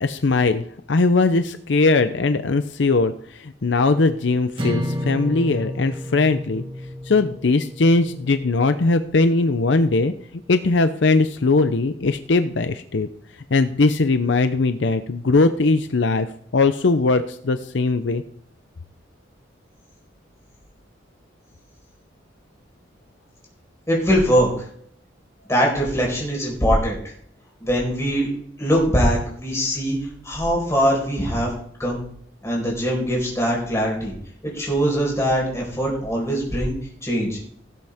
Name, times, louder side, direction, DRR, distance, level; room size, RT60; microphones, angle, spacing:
voice 1, 0.0-6.6 7.1-10.1 10.5-13.1 13.5-16.3 16.5-18.2, left 3 dB, 70° left, 10 dB, 0.6 m, -20 dB
sound 1, 4.6-8.9, left 1 dB, 25° right, 1.7 m, -31 dB
voice 2, 23.9-24.7 25.5-27.1 27.6-28.3 28.6-30.0 30.2-31.5 31.8-32.0 32.4-34.1 34.4-36.7 37.0-37.4, equal, 15° left, -2 dB, 4.7 m, -22 dB
17.5 x 8.0 x 3.6 m, 0.65 s
head